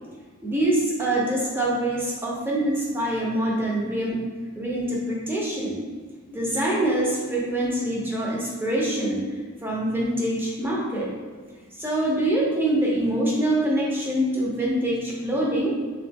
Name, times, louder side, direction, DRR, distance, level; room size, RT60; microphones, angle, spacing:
voice 1, 0.4-4.3 4.6-5.8 6.3-9.3 9.6-11.1 11.8-15.7, right 1 dB, 10° right, -4 dB, 0.6 m, -25 dB
3.3 x 3.1 x 3.4 m, 1.5 s
head